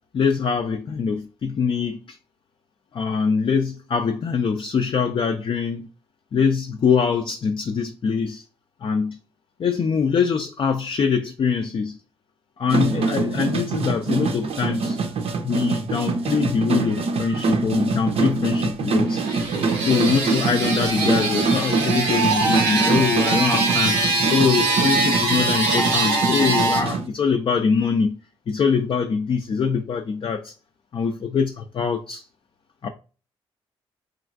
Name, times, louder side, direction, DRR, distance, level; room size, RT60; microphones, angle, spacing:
voice 1, 0.1-2.2 2.9-5.9 6.3-8.4 8.8-9.2 9.6-12.0 12.6-15.0 15.4-19.3 19.8-24.0 24.3-28.2 28.5-30.5 30.9-32.2 32.8-32.9, left 6 dB, 45° left, 0.4 m, -23 dB
sound 1, 12.7-27.1, right 4 dB, 55° right, 0.5 m, -25 dB
sound 2, 19.0-26.8, right 2 dB, 90° right, 0.7 m, -23 dB
3.0 x 2.4 x 2.4 m
hypercardioid pair, 45°, 12 cm